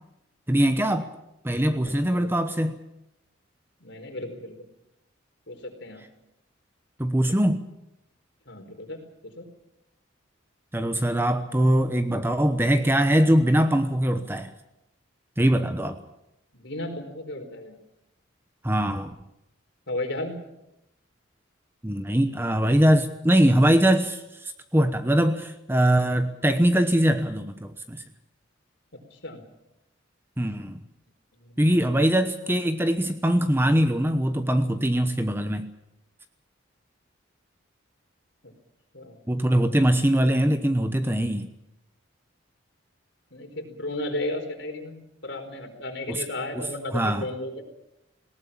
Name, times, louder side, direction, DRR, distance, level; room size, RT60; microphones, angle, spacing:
voice 1, 0.5-1.1 1.4-2.7 7.0-7.7 10.7-14.5 15.4-16.0 18.6-19.1 21.8-28.0 30.4-30.8 31.6-35.7 39.3-41.5 46.1-46.2 46.5-46.6 46.9-47.2, right 1 dB, 10° right, 9 dB, 1.0 m, -22 dB
voice 2, 1.7-2.3 3.8-4.6 5.5-6.1 8.5-9.5 16.5-17.8 19.9-20.4 28.9-29.4 31.3-31.8 38.4-38.5 38.9-39.3 43.3-47.7, left 1 dB, 60° left, 5 dB, 4.5 m, -35 dB
19.5 x 18.0 x 8.8 m, 0.87 s
head